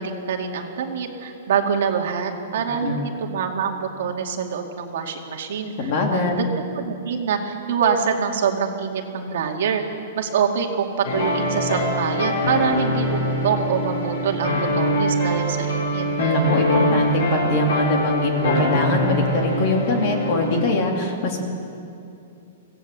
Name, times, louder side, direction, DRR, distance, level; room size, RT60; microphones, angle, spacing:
voice 1, 0.0-6.5 6.8-9.8 10.2-16.0, right 6 dB, 55° right, 2 dB, 2.4 m, -25 dB
voice 2, 5.8-6.3 16.2-21.4, left 2 dB, 30° left, 2 dB, 2.8 m, -22 dB
sound 1, 11.0-20.7, equal, 80° left, 7.1 m, -23 dB
25.0 x 17.0 x 7.6 m, 2.6 s
hypercardioid pair, 175°, 0 cm